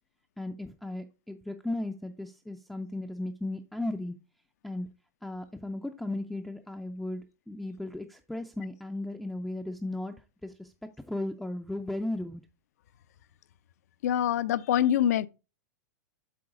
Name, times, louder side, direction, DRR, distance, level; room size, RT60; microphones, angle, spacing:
voice 1, 0.4-4.2 4.6-4.9 5.2-10.2 10.4-10.7 11.1-12.4, left 1 dB, ahead, 0.3 m, -36 dB
voice 2, 14.0-15.3, left 10 dB, 65° left, 0.5 m, -25 dB
7.7 x 4.0 x 4.8 m
supercardioid pair, 155°, 9 cm